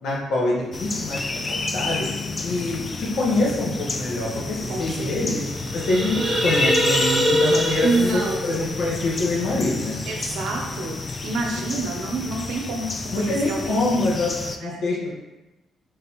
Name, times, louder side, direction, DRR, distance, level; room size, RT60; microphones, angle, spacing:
voice 1, 0.0-2.1 2.4-5.4 5.7-9.9 11.7-11.8 13.1-14.3 14.6-15.1, left 2 dB, 70° left, -4 dB, 1.3 m, -25 dB
sound 1, 0.7-14.6, left 3 dB, 30° left, 0.4 m, -30 dB
voice 2, 4.7-5.4 7.8-8.4 10.1-14.3 14.6-14.8, right 3 dB, 80° right, 1 dB, 0.8 m, -28 dB
sound 2, 5.5-9.7, equal, 45° right, 0.8 m, -24 dB
4.0 x 3.3 x 2.9 m, 1.0 s
cardioid pair, 90°, 0 cm